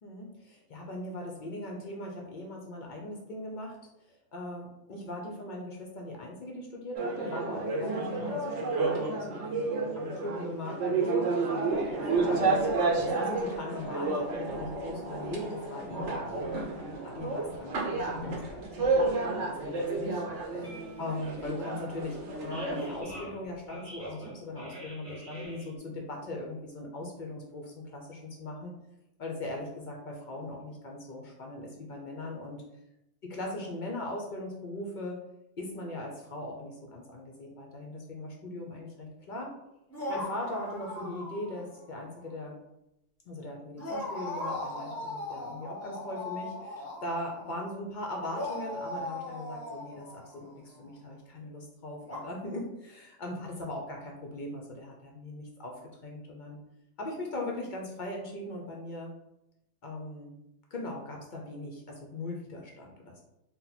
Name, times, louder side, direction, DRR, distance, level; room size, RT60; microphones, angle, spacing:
voice 1, 0.0-3.8 4.0-12.6 13.0-28.7 29.2-32.6 33.3-35.2 35.6-39.5 40.1-42.6 43.3-56.6 57.0-59.1 59.8-60.3 60.7-63.2, left 1 dB, 60° left, 0 dB, 0.5 m, -40 dB
sound 1, 6.9-23.0, right 3 dB, 70° right, 1.0 m, -31 dB
sound 2, 11.7-25.8, equal, 30° right, 0.9 m, -44 dB
sound 3, 39.9-41.8 42.1-42.3 43.8-47.6 48.3-50.7 52.0-52.2, left 2 dB, 15° left, 0.7 m, -38 dB
2.8 x 2.1 x 4.0 m, 0.87 s
omnidirectional pair, 1.3 m